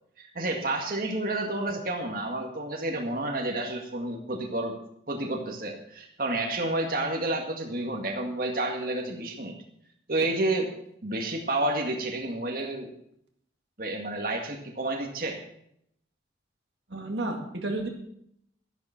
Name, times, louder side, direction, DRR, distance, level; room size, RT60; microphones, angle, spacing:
voice 1, 0.2-4.8 5.1-9.5 10.1-10.7 11.0-12.9 13.8-15.4, right 2 dB, 50° right, 1 dB, 2.0 m, -30 dB
voice 2, 16.9-17.9, right 2 dB, 75° right, 2 dB, 2.1 m, -31 dB
12.5 x 11.0 x 5.8 m, 0.72 s
head